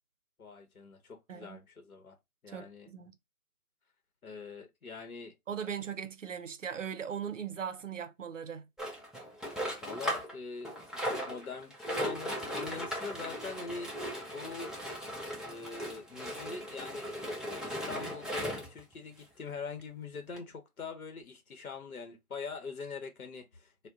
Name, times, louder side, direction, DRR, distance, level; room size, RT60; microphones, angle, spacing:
voice 1, 0.4-2.2 2.4-2.9 4.2-5.3 9.8-13.9 14.3-14.7 15.4-17.1 17.6-23.9, left 4 dB, 70° left, 1.0 m, -43 dB
voice 2, 2.5-3.2 5.5-8.7, right 7 dB, 55° right, 0.5 m, -39 dB
sound 1, 8.8-10.4 10.6-18.8 19.5-19.6 19.8-19.9 20.4-20.5, equal, ahead, 0.4 m, -37 dB
2.6 x 2.2 x 3.6 m
figure-of-eight pair, 160°, 45 cm